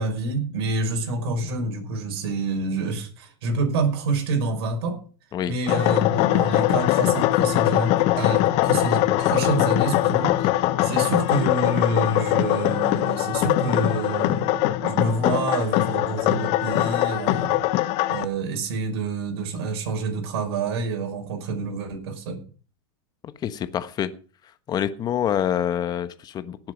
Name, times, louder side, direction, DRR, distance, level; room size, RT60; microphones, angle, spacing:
voice 1, 0.0-5.0 5.5-10.5 10.8-17.5 18.1-22.4, right 3 dB, 70° right, 3 dB, 5.6 m, -27 dB
sound 1, 5.7-18.2, left 15 dB, 50° left, 1.1 m, -22 dB
voice 2, 23.4-24.1 24.7-26.6, left 9 dB, 30° left, 12 dB, 1.1 m, -26 dB
18.0 x 7.8 x 5.2 m, 0.39 s
supercardioid pair, 120°, 13 cm